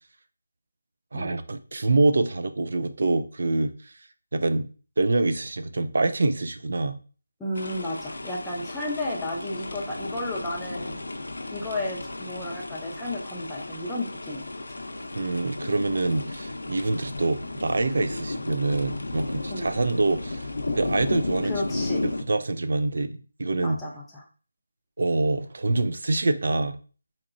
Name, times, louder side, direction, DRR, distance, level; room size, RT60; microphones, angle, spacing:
voice 1, 1.1-3.9 4.3-4.7 5.0-7.0 15.1-20.5 20.8-23.8 25.0-26.8, right 2 dB, 55° right, 11 dB, 0.3 m, -25 dB
voice 2, 7.4-11.1 11.5-14.4 19.5-19.7 21.4-22.1 23.6-24.2, left 1 dB, 5° left, -6 dB, 0.5 m, -33 dB
sound 1, 7.5-22.2, left 2 dB, 85° left, 0.5 m, -34 dB
3.9 x 2.9 x 2.5 m, 0.38 s
figure-of-eight pair, 170°, 0 cm